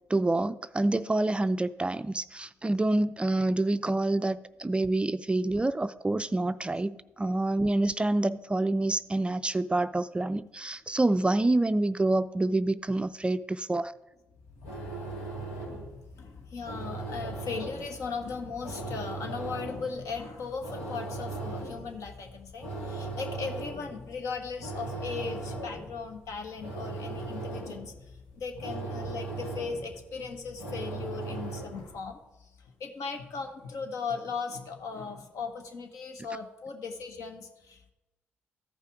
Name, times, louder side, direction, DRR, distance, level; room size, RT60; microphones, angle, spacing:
voice 1, 0.1-13.9, right 2 dB, 20° right, 13 dB, 0.4 m, -27 dB
sound 1, 14.4-32.0, right 2 dB, 90° left, 2.0 m, -39 dB
voice 2, 16.1-27.9 28.3-32.5 32.8-37.9, left 4 dB, 65° left, 4 dB, 1.4 m, -38 dB
14.0 x 5.6 x 4.8 m, 0.98 s
hypercardioid pair, 45°, 6 cm